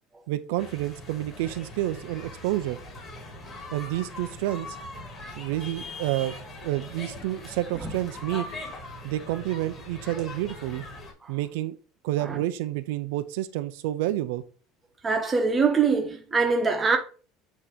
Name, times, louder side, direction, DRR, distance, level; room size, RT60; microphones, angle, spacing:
voice 1, 0.3-2.8 3.7-4.8 5.4-6.3 6.6-8.5 9.0-10.8 11.3-11.8 12.0-14.4, right 15 dB, 75° right, 0.5 m, -29 dB
sound 1, 0.6-11.1, left 2 dB, 20° left, 1.9 m, -41 dB
voice 2, 15.0-17.0, right 4 dB, 15° right, 0.9 m, -23 dB
8.5 x 2.9 x 5.0 m
cardioid pair, 175°, 0 cm